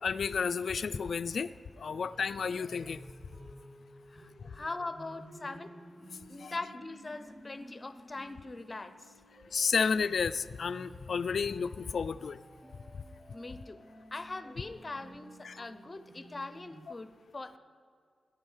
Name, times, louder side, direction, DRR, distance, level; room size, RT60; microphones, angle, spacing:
voice 1, 0.0-1.5 1.8-3.0 6.4-6.5 9.5-12.4 15.4-15.7, left 5 dB, 65° left, 14 dB, 0.4 m, -31 dB
sound 1, 0.8-16.8, right 1 dB, 15° right, 4.6 m, -54 dB
voice 2, 4.1-5.7 6.3-9.1 13.3-13.8 14.1-17.6, left 3 dB, 25° left, 11 dB, 0.7 m, -41 dB
17.5 x 10.5 x 5.6 m, 2.2 s
wide cardioid pair, 130°, 0 cm